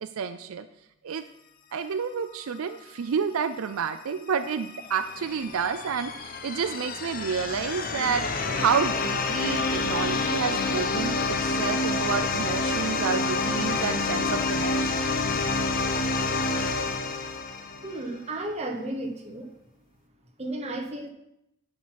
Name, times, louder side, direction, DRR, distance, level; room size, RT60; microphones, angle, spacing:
voice 1, 0.0-0.7 1.0-1.2 1.7-8.3 8.6-15.1, right 6 dB, 75° right, 11 dB, 0.4 m, -29 dB
sound 1, 4.3-18.1, left 3 dB, 40° left, 0.8 m, -28 dB
voice 2, 17.8-19.5 20.4-21.1, right 1 dB, 30° right, 3 dB, 1.0 m, -33 dB
10.5 x 5.8 x 4.7 m, 0.84 s
head